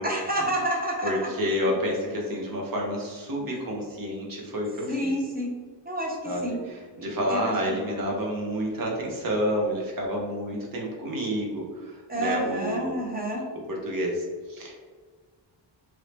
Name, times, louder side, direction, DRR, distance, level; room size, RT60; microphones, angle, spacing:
voice 1, 0.0-1.3 3.5-3.6 4.9-5.5 5.8-6.6 7.3-8.1 12.1-13.4, equal, 20° right, -1 dB, 0.7 m, -29 dB
voice 2, 1.0-5.1 6.2-6.6 7.0-12.9 13.7-14.8, equal, 45° right, -1 dB, 0.9 m, -29 dB
3.2 x 2.7 x 3.2 m, 1.5 s
wide cardioid pair, 145°, 47 cm